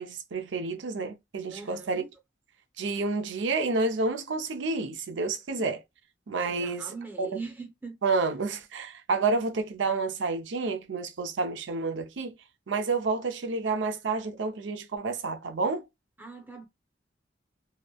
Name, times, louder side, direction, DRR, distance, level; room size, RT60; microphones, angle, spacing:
voice 1, 0.0-2.0 2.8-5.8 6.3-7.4 8.0-12.3 12.7-15.9, right 3 dB, 70° right, 0.5 m, -29 dB
voice 2, 1.5-2.1 6.5-7.9 16.2-16.7, right 4 dB, 10° right, 0.7 m, -41 dB
3.0 x 2.0 x 2.2 m
head